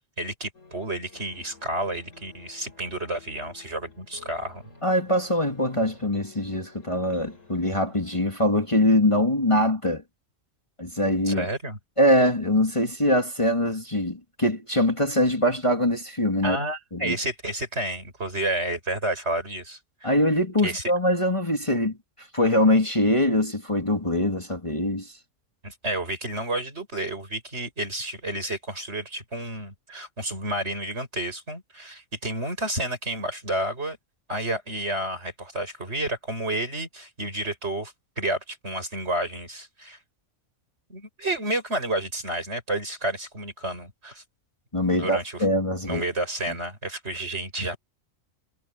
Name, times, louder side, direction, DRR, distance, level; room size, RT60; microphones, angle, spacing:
voice 1, 0.2-4.6 11.3-11.8 16.4-20.1 20.6-20.8 25.6-34.0 34.3-40.0 40.9-44.2 44.9-45.5 45.8-47.8, right 1 dB, 55° right, 6.9 m, -30 dB
sound 1, 0.5-8.3, left 3 dB, 75° left, 7.4 m, -52 dB
voice 2, 4.8-10.0 10.8-11.5 12.0-16.6 16.9-17.2 20.0-25.2 44.7-46.1, left 1 dB, 25° left, 2.3 m, -23 dB
omnidirectional pair, 1.4 m